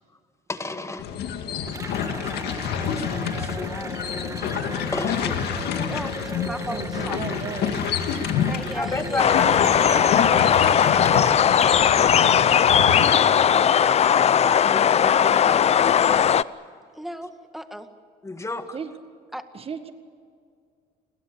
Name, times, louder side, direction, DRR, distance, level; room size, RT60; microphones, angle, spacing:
voice 1, 0.5-1.0 1.8-5.4 6.5-6.6 8.7-10.1 10.7-11.4 13.2-13.9 14.2-15.6 18.2-18.8, left 2 dB, 15° left, 7 dB, 1.9 m, -34 dB
sound 1, 1.0-13.1, left 8 dB, 75° left, 2.3 m, -28 dB
Cheering / Applause, 1.7-11.6, right 3 dB, 20° right, 2.1 m, -37 dB
voice 2, 5.8-7.4 8.1-9.4 17.0-17.9 19.3-19.4, equal, ahead, 7 dB, 1.9 m, -36 dB
voice 3, 6.7-7.8 10.7-11.0 18.7-18.9 19.5-19.9, right 6 dB, 35° right, 9 dB, 1.8 m, -35 dB
sound 2, 9.2-16.4, left 8 dB, 40° left, 0.6 m, -18 dB
29.5 x 22.0 x 7.0 m, 2.2 s
cardioid pair, 110°, 17 cm